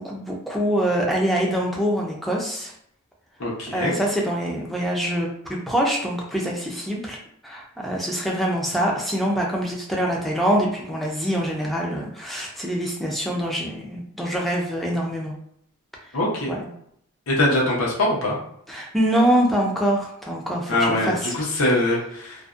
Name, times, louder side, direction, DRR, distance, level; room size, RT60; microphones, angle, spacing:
voice 1, 0.0-2.7 3.7-7.2 7.4-15.3 16.5-16.7 18.7-21.3, equal, ahead, -2 dB, 0.4 m, -24 dB
voice 2, 3.4-3.9 16.1-16.5 17.3-18.4 20.7-22.3, left 1 dB, 85° left, -3 dB, 0.7 m, -22 dB
2.5 x 2.1 x 2.4 m, 0.70 s
head